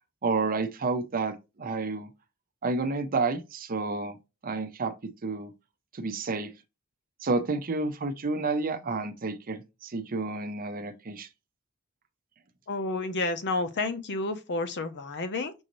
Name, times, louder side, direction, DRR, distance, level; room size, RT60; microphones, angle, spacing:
voice 1, 0.2-2.1 2.6-4.2 4.4-5.5 5.9-6.5 7.2-11.3, right 3 dB, 40° right, 0.6 m, -30 dB
voice 2, 12.7-15.5, left 2 dB, 55° left, 0.6 m, -30 dB
6.1 x 2.6 x 3.0 m
head